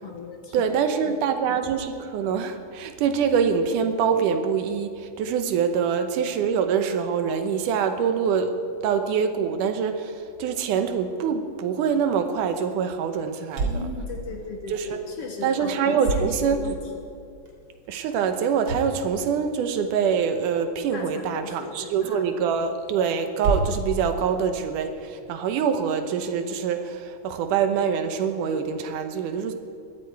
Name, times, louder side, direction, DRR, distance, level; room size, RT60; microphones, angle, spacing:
voice 1, 0.0-1.1 13.6-16.8 20.9-22.2, left 4 dB, 60° left, 3 dB, 1.8 m, -37 dB
voice 2, 0.5-8.6 8.8-13.8 14.7-15.0 15.4-16.7 17.9-29.5, right 7 dB, 80° right, 7 dB, 2.5 m, -25 dB
sound 1, 11.8-25.4, right 3 dB, 45° right, 2.8 m, -35 dB
20.5 x 13.5 x 4.6 m, 2.5 s
omnidirectional pair, 3.6 m